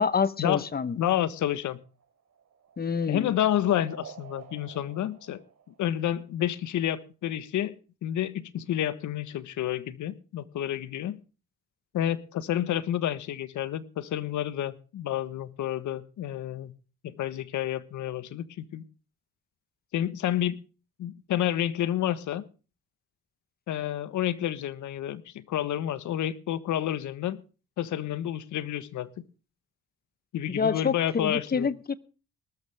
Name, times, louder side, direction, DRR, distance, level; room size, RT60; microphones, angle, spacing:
voice 1, 0.0-1.0 2.8-3.3 30.5-32.0, left 5 dB, 30° left, 17 dB, 1.0 m, -27 dB
voice 2, 0.9-1.8 3.1-5.4 5.8-11.2 11.9-16.7 17.0-18.8 19.9-20.6 21.0-22.4 23.7-27.4 27.8-29.1 30.3-31.7, left 11 dB, 75° left, 15 dB, 1.4 m, -29 dB
sound 1, 1.5-6.3, right 7 dB, 60° right, 3.4 m, -49 dB
19.5 x 13.0 x 3.5 m, 0.35 s
cardioid pair, 90°, 30 cm